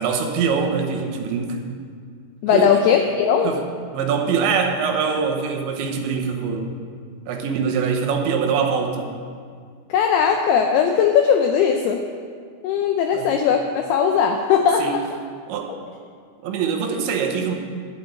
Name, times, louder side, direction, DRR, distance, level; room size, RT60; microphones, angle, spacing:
voice 1, 0.0-1.6 2.5-2.7 3.4-3.6 3.9-6.7 7.3-9.1 13.1-13.3 14.8-15.0 15.5-15.7 16.4-17.5, right 6 dB, 85° right, 3 dB, 3.3 m, -23 dB
voice 2, 2.4-3.5 9.9-12.0 12.6-15.0 15.7-15.8, left 7 dB, 90° left, 4 dB, 2.2 m, -19 dB
13.0 x 5.2 x 8.5 m, 2.1 s
omnidirectional pair, 5.2 m